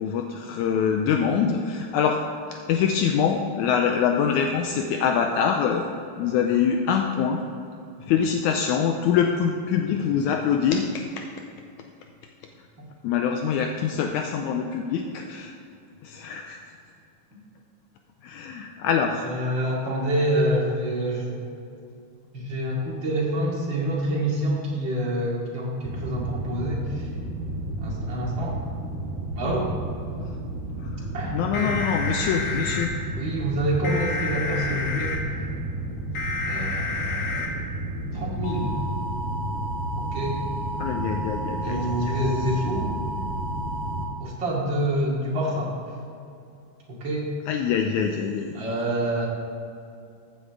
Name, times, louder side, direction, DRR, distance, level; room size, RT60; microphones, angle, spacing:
voice 1, 0.0-2.2 2.5-5.9 6.2-7.4 8.0-11.2 13.0-15.5 16.0-16.6 18.2-19.3 30.8-30.9 31.3-32.9 40.8-42.1 47.5-48.6, left 7 dB, 80° left, 4 dB, 1.8 m, -24 dB
voice 2, 19.2-21.3 22.3-27.0 27.8-28.5 29.4-29.7 31.1-31.7 32.4-32.6 33.1-35.2 36.5-37.4 38.1-38.7 40.0-40.4 41.6-42.9 44.2-45.7 47.0-47.3 48.5-49.3, right 1 dB, 40° right, -5 dB, 2.7 m, -27 dB
sound 1, 25.8-44.1, right 1 dB, 80° right, 0.6 m, -32 dB
sound 2, 31.5-32.9 33.8-35.2 36.1-37.5 38.4-44.0, left 2 dB, 60° left, 1.1 m, -31 dB
15.0 x 8.9 x 3.6 m, 2.6 s
omnidirectional pair, 3.7 m